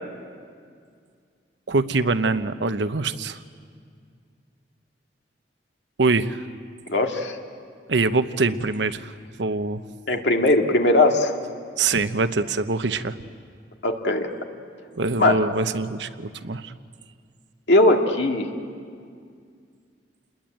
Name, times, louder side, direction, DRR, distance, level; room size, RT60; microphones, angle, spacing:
voice 1, 1.7-3.4 6.0-6.4 7.9-9.1 9.4-9.8 11.8-13.2 15.0-16.7, right 3 dB, 85° right, 10 dB, 0.9 m, -24 dB
voice 2, 6.9-7.4 10.1-11.3 13.8-14.3 15.2-15.4 17.7-18.5, left 2 dB, 75° left, 2 dB, 2.2 m, -19 dB
29.0 x 21.0 x 9.2 m, 2.2 s
head